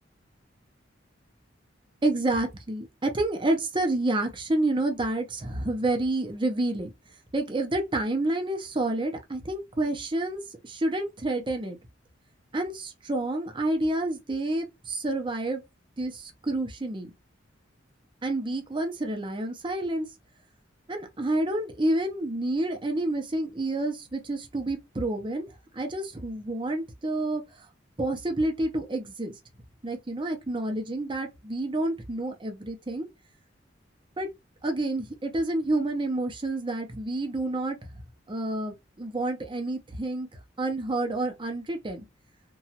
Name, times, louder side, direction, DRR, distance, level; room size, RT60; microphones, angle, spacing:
voice 1, 2.0-6.9 7.3-11.8 12.5-15.6 16.0-17.1 18.2-20.1 20.9-25.5 25.7-27.4 28.0-29.3 29.8-33.1 34.2-34.3 34.6-37.9 38.3-40.3 40.6-42.0, right 2 dB, 25° right, 0.6 m, -29 dB
2.9 x 2.3 x 2.8 m
head